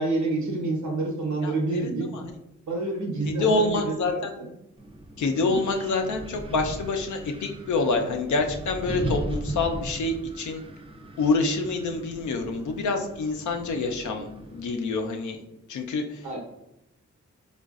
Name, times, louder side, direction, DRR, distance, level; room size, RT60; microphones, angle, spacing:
voice 1, 0.0-2.1 2.7-4.5 16.2-16.4, right 2 dB, 80° right, -1 dB, 0.9 m, -28 dB
voice 2, 1.4-2.2 3.3-4.3 5.2-10.6 11.2-15.4 15.7-16.0, left 3 dB, 80° left, 4 dB, 0.6 m, -27 dB
Wind, 4.8-14.7, right 1 dB, 20° right, 0.4 m, -37 dB
3.9 x 2.4 x 2.3 m, 0.86 s
cardioid pair, 55°, 29 cm